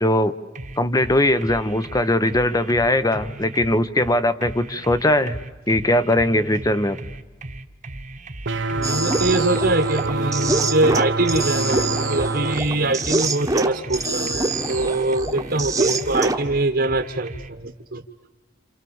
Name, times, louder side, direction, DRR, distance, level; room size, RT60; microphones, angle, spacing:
voice 1, 0.0-0.3 0.8-5.4 5.7-7.0, left 1 dB, 20° left, 14 dB, 1.0 m, -20 dB
sound 1, 0.5-17.5, right 2 dB, 40° right, 1.3 m, -37 dB
sound 2, 8.4-12.6, right 2 dB, 75° right, 1.0 m, -25 dB
voice 2, 8.7-18.0, right 2 dB, 60° right, 5 dB, 1.4 m, -23 dB
sound 3, 8.8-16.4, right 2 dB, 20° right, 1.3 m, -25 dB
28.5 x 28.5 x 7.2 m, 1.2 s
head